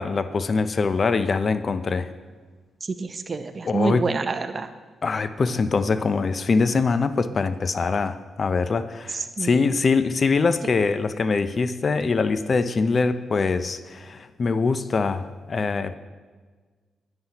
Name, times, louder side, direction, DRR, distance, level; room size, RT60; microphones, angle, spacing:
voice 1, 0.0-2.1 3.6-4.1 5.0-16.0, left 4 dB, 45° left, 12 dB, 0.5 m, -23 dB
voice 2, 3.0-4.7 9.1-9.5, right 4 dB, 40° right, 10 dB, 0.6 m, -27 dB
10.5 x 9.6 x 2.9 m, 1.4 s
cardioid pair, 70°, 0 cm